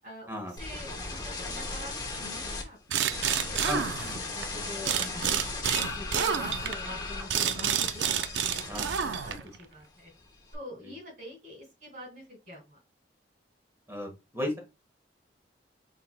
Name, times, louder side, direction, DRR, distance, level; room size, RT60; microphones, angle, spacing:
voice 1, 0.0-3.9 4.3-8.6 9.0-10.1 10.5-12.8, left 1 dB, 45° right, -1 dB, 2.4 m, -45 dB
sound 1, 0.6-2.6 3.1-9.7 10.0-10.5, left 3 dB, 20° left, 0.8 m, -37 dB
sound 2, 2.9-4.5 4.8-9.6, right 8 dB, 70° right, 0.4 m, -29 dB
voice 2, 3.6-4.2 8.7-9.4 13.9-14.6, left 1 dB, 15° right, 2 dB, 1.1 m, -35 dB
4.3 x 3.8 x 2.2 m, 0.25 s
head